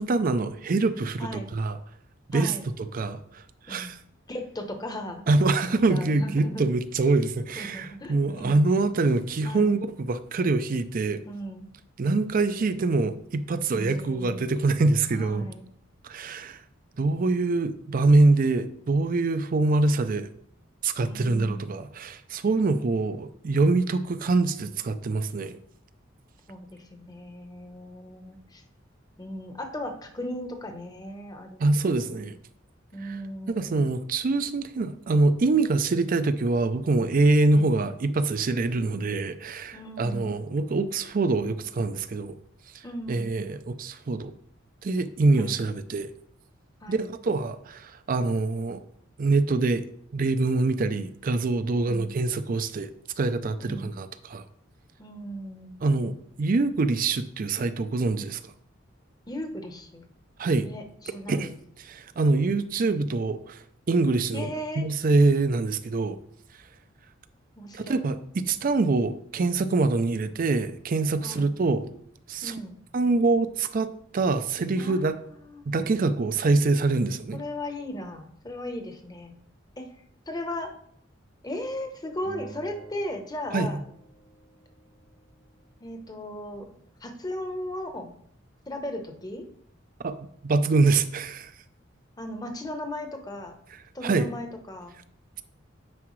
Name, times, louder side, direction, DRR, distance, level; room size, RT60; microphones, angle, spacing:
voice 1, 0.0-1.8 2.3-2.5 2.9-4.0 5.3-11.2 12.0-15.5 16.0-16.6 17.0-20.3 20.8-25.6 31.6-32.4 33.0-33.2 33.5-42.4 43.1-44.3 44.8-46.1 46.9-48.8 49.2-49.8 50.1-52.9 53.2-54.4 55.8-58.4 60.4-60.7 61.3-61.5 61.8-63.6 63.9-66.2 67.7-71.9 72.3-72.5 72.9-73.9 74.1-75.2 75.7-77.4 83.5-83.8 90.0-90.1 90.4-91.5 94.0-94.3, right 3 dB, 45° right, 11 dB, 0.4 m, -24 dB
voice 2, 2.3-2.6 3.7-3.9 4.3-5.2 5.7-6.7 7.6-8.6 9.4-9.8 11.3-11.7 13.7-14.5 15.1-15.6 21.0-21.8 26.5-28.6 29.2-32.2 32.9-33.9 39.7-40.3 42.8-43.3 45.3-45.5 46.8-47.1 51.7-52.1 53.6-53.9 55.0-55.8 59.3-60.0 60.6-61.5 64.3-64.9 67.6-68.0 71.2-71.5 72.4-72.7 74.8-75.7 77.3-79.3 79.8-79.9 80.3-80.7 81.4-83.8 85.8-86.7 87.0-88.1 88.7-89.5 92.2-93.5 93.9-94.9, left 1 dB, 20° left, 5 dB, 0.9 m, -37 dB
Acoustic guitar, 82.2-85.5, right 2 dB, 85° left, 2.5 m, -49 dB
9.4 x 4.8 x 3.1 m, 0.67 s
head